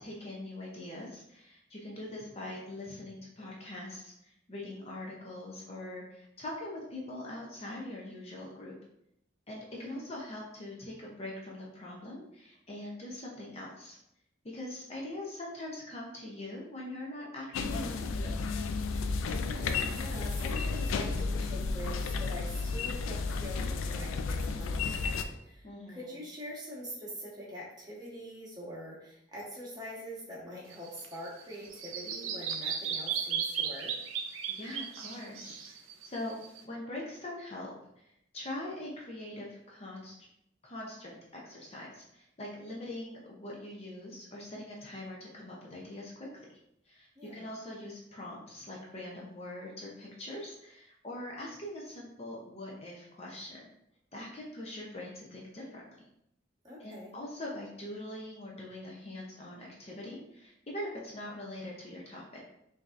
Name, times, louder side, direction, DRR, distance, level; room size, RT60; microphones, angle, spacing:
voice 1, 0.0-8.7 9.5-14.0 14.5-18.5 25.6-26.1 34.5-35.8 36.0-36.3 36.6-38.0 38.3-40.2 40.6-46.5 46.9-53.6 54.1-55.8 56.8-62.4, left 1 dB, 30° left, -3 dB, 0.6 m, -42 dB
sound 1, 17.5-25.2, left 4 dB, 90° left, 0.3 m, -32 dB
voice 2, 19.2-33.9 47.2-47.5 56.6-57.1, equal, 20° right, -5 dB, 1.1 m, -44 dB
Bird vocalization bird call bird song, 30.7-36.6, right 7 dB, 85° right, 0.5 m, -36 dB
5.0 x 2.7 x 2.4 m, 0.80 s
head